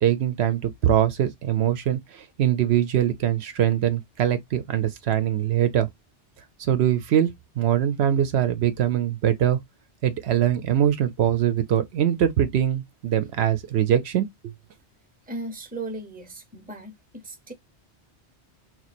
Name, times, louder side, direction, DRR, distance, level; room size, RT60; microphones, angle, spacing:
voice 1, 0.0-5.9 6.7-9.6 10.0-14.5, right 10 dB, 70° right, 0.8 m, -23 dB
voice 2, 15.3-17.5, right 2 dB, 10° right, 0.7 m, -37 dB
3.0 x 2.3 x 4.1 m
omnidirectional pair, 1.2 m